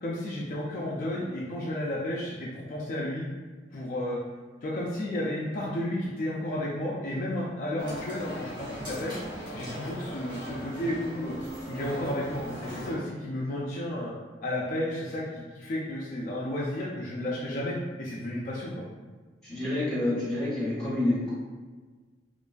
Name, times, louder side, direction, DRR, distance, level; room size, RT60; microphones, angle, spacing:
voice 1, 0.0-3.3 3.7-4.2 4.6-9.2 9.5-11.4 11.7-14.1 14.4-18.7, left 1 dB, 45° left, -5 dB, 0.3 m, -32 dB
sound 1, 7.8-13.0, equal, 30° right, 0.9 m, -39 dB
voice 2, 19.4-21.3, left 1 dB, 5° left, -10 dB, 1.0 m, -28 dB
2.4 x 2.2 x 2.4 m, 1.4 s
head